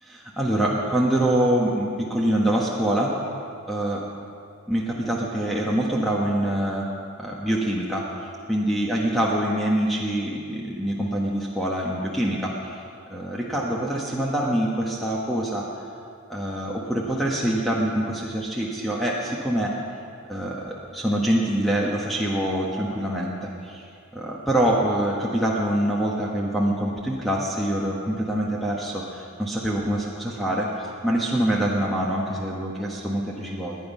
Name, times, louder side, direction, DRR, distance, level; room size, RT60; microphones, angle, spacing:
voice 1, 0.0-3.1 3.7-4.1 4.7-6.9 7.2-12.8 13.1-15.7 16.3-19.8 20.3-23.8 24.1-33.8, right 1 dB, ahead, -4 dB, 1.3 m, -25 dB
22.0 x 9.1 x 5.5 m, 2.4 s
head